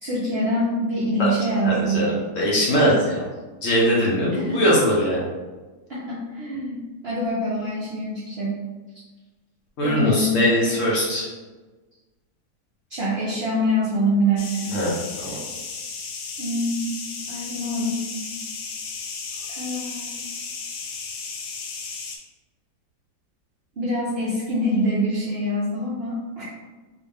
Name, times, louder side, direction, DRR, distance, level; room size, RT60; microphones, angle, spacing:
voice 1, 0.0-2.1 4.3-4.6 5.9-8.6 9.8-10.5 12.9-14.8 16.4-16.9 17.3-18.1 19.5-20.2 23.8-26.4, equal, 55° right, -8 dB, 0.7 m, -25 dB
voice 2, 1.6-3.2 3.6-5.3 9.8-11.3 14.7-15.4, equal, 60° left, -5 dB, 1.0 m, -21 dB
sound 1, 14.4-22.2, left 5 dB, 85° left, 1.3 m, -34 dB
3.9 x 2.1 x 3.4 m, 1.2 s
omnidirectional pair, 1.8 m